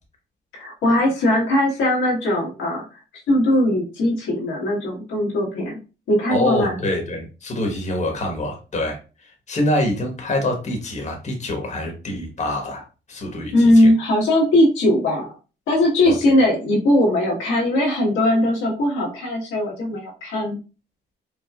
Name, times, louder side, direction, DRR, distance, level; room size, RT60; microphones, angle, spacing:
voice 1, 0.5-3.0 3.3-5.8 6.1-6.8 13.5-15.3 15.7-20.6, left 1 dB, 90° left, -3 dB, 1.4 m, -19 dB
voice 2, 6.3-9.0 9.5-12.8 13.1-13.9 16.1-16.4, left 1 dB, 35° left, 1 dB, 1.2 m, -25 dB
4.6 x 2.3 x 2.3 m, 0.33 s
cardioid pair, 90°, 20 cm